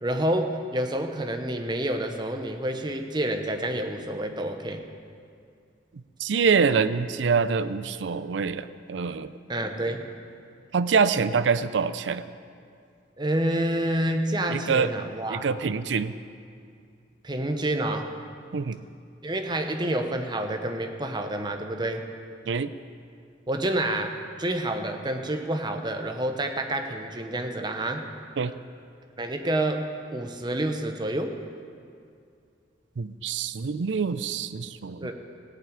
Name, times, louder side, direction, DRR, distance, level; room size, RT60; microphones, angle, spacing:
voice 1, 0.0-4.8 9.5-10.0 13.2-15.5 17.2-18.1 19.2-22.1 23.5-28.1 29.2-31.4 35.0-35.1, right 1 dB, 25° right, 5 dB, 0.8 m, -28 dB
voice 2, 6.2-9.3 10.7-12.2 14.5-14.9 15.3-16.1 18.5-18.8 22.5-22.7 28.4-28.5 33.0-35.1, right 5 dB, 80° right, 14 dB, 0.5 m, -25 dB
16.0 x 5.8 x 8.7 m, 2.3 s
head